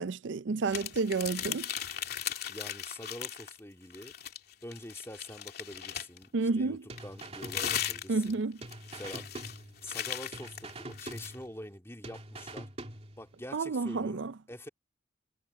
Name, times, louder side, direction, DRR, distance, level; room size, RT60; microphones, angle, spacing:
voice 1, 0.0-1.7 6.3-6.8 8.1-8.6 13.5-14.3, right 4 dB, 70° right, 0.5 m, -30 dB
sound 1, 0.7-3.6 3.9-6.3 7.0-11.4, left 10 dB, 55° left, 2.8 m, -38 dB
voice 2, 2.5-4.1 4.6-8.4 8.9-9.3 9.8-12.7 13.2-14.7, left 1 dB, 15° left, 2.9 m, -45 dB
sound 2, 6.9-8.3 8.6-10.0 10.3-11.7 12.0-13.4, right 2 dB, 35° right, 2.7 m, -45 dB
head